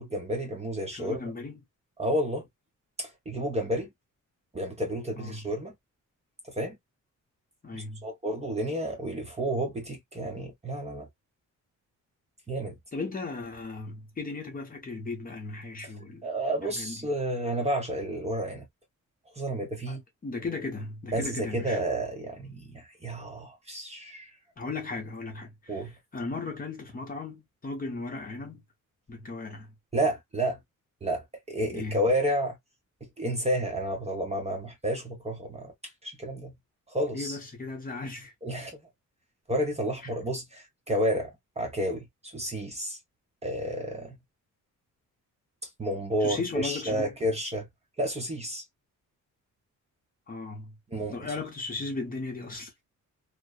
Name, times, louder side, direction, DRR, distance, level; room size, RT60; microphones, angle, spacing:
voice 1, 0.0-1.2 2.0-2.5 3.0-3.9 4.5-5.7 6.5-6.8 8.0-11.1 12.5-12.7 16.2-18.6 19.4-20.0 21.1-24.3 25.7-25.9 29.9-30.6 31.0-32.6 33.2-35.7 36.0-36.5 36.9-37.4 38.4-38.8 39.5-43.0 43.4-44.2 45.8-47.7 48.0-48.6 50.9-51.2, right 1 dB, 20° right, 0.7 m, -30 dB
voice 2, 0.9-1.6 5.2-5.5 7.6-8.1 12.9-16.2 16.6-17.0 19.9-21.8 24.6-28.6 29.1-29.7 31.7-32.3 37.1-38.3 46.2-47.2 50.3-50.8 51.1-52.8, left 3 dB, 25° left, 0.8 m, -36 dB
2.8 x 2.0 x 2.2 m
wide cardioid pair, 160°, 32 cm